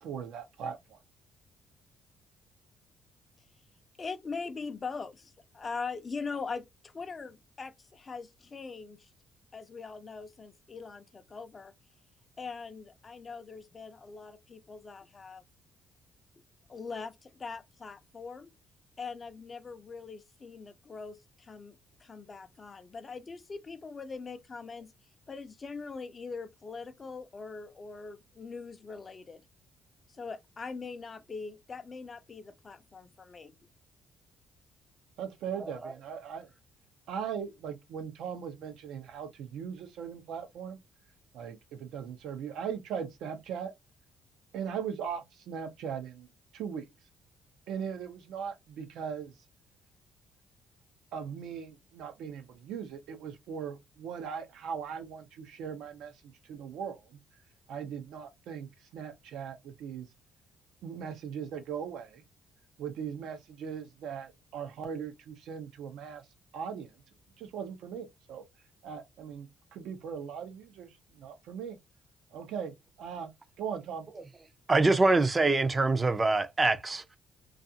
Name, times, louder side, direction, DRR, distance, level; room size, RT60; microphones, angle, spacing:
voice 1, 0.0-1.0 35.2-36.5 37.1-40.8 41.3-43.7 44.5-46.3 46.5-46.9 47.7-49.3 51.1-57.2 57.7-60.1 60.8-62.2 62.8-66.3 66.5-66.9 67.4-68.4 68.8-71.8 72.3-73.3 73.6-74.1, right 7 dB, 80° right, 0.6 m, -39 dB
voice 2, 4.0-9.1 9.5-11.7 12.4-15.4 16.7-18.5 19.0-24.9 25.3-29.4 30.1-33.5, left 4 dB, 30° left, 0.5 m, -42 dB
voice 3, 74.7-77.2, right 3 dB, 25° right, 0.4 m, -24 dB
2.4 x 2.4 x 2.7 m
cardioid pair, 110°, 0 cm